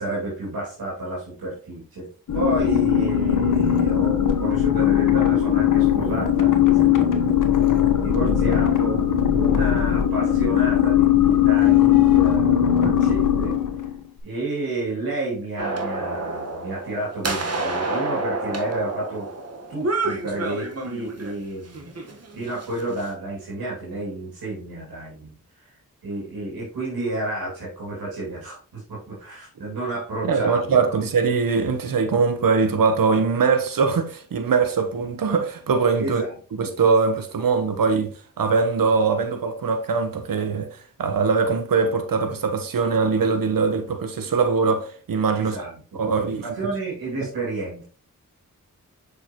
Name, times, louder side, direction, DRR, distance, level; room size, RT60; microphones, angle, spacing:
voice 1, 0.0-2.1 2.3-13.6 14.2-19.3 19.7-25.3 25.6-25.7 26.0-31.0 36.0-36.3 36.6-36.7 45.3-46.1 46.4-47.8, right 2 dB, 90° right, 2.5 m, -31 dB
sound 1, 2.3-14.0, left 10 dB, 60° left, 1.2 m, -19 dB
sound 2, 15.6-21.3 21.7-23.1, right 2 dB, 45° right, 1.4 m, -29 dB
voice 2, 30.2-36.2 36.5-38.1 38.4-40.7 41.0-45.6 45.9-46.4, right 5 dB, 70° right, 1.1 m, -22 dB
6.3 x 5.1 x 3.0 m
cardioid pair, 40°, 35 cm